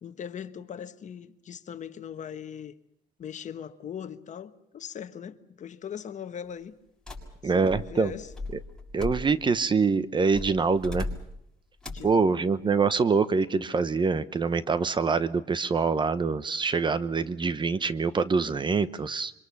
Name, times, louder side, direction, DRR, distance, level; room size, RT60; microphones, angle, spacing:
voice 1, 0.0-2.8 3.2-6.8 7.4-8.3 11.9-12.3, left 8 dB, 45° left, 1.3 m, -40 dB
sound 1, 7.1-9.6 10.3-11.4 11.8-12.2, left 2 dB, 5° left, 6.5 m, -38 dB
voice 2, 7.4-8.1 8.9-11.1 12.0-19.3, right 4 dB, 30° right, 0.9 m, -25 dB
26.0 x 24.0 x 7.1 m
cardioid pair, 110°, 17 cm